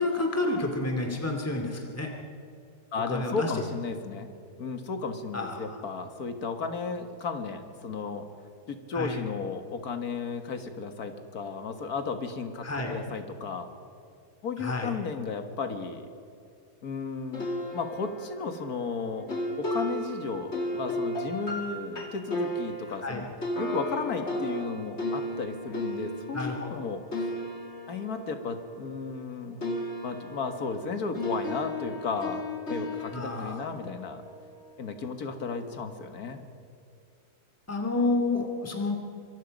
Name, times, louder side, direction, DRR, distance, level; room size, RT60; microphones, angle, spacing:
voice 1, 0.0-2.1 3.0-3.6 5.3-5.8 8.9-9.2 12.6-13.0 14.6-14.9 23.0-23.2 26.3-26.8 33.1-33.6 37.7-38.9, left 2 dB, 10° left, 3 dB, 2.3 m, -30 dB
voice 2, 2.9-4.3 4.6-8.3 8.7-13.7 14.4-16.1 16.8-19.3 19.6-23.3 23.6-27.3 27.9-29.6 30.0-32.4 32.7-34.2 34.8-36.4, left 4 dB, 60° left, 7 dB, 2.1 m, -34 dB
sound 1, 17.3-29.3 29.6-34.8, left 1 dB, 40° left, 2.7 m, -35 dB
25.5 x 23.0 x 5.3 m, 2.4 s
omnidirectional pair, 1.8 m